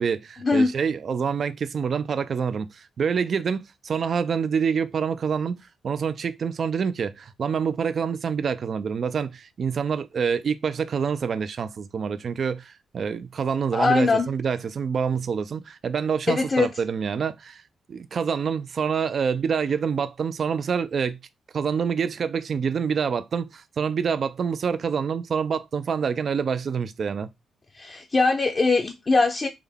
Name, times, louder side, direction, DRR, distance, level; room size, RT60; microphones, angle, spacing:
voice 1, 0.0-5.6 5.8-17.6 17.9-21.2 21.5-27.3, right 6 dB, 55° right, 0.3 m, -26 dB
voice 2, 13.7-14.3 16.3-16.7 27.7-29.5, left 3 dB, 35° left, 0.5 m, -21 dB
3.7 x 2.1 x 3.4 m
cardioid pair, 75°, 0 cm